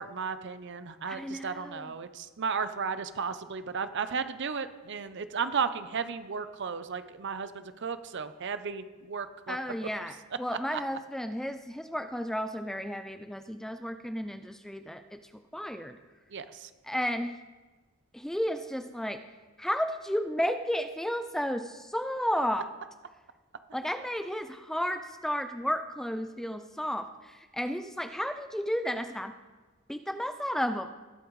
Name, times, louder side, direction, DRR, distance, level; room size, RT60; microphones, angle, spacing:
voice 1, 0.0-9.6 10.7-10.8 16.3-16.7, right 6 dB, 55° right, 11 dB, 0.6 m, -34 dB
voice 2, 1.1-1.9 9.5-16.0 16.8-17.4 18.1-19.2 19.6-22.7 23.7-29.3 29.9-30.9, equal, ahead, 8 dB, 0.3 m, -33 dB
20.0 x 8.6 x 3.2 m, 1.3 s
head